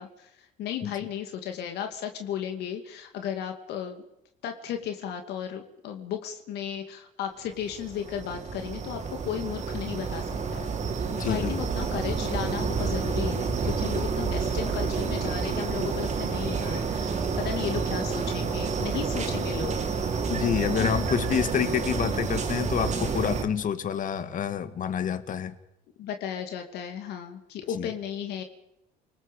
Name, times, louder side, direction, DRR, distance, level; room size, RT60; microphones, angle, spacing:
voice 1, 0.0-4.0 4.4-10.7 11.2-19.8 20.8-21.0 26.0-28.4, left 9 dB, 80° left, 5 dB, 2.6 m, -35 dB
sound 1, 7.6-23.4, right 5 dB, 45° right, 3.8 m, -29 dB
voice 2, 11.1-11.5 20.3-25.6 27.7-27.9, left 8 dB, 50° left, 11 dB, 1.9 m, -28 dB
29.0 x 19.5 x 5.4 m, 0.83 s
cardioid pair, 110°, 17 cm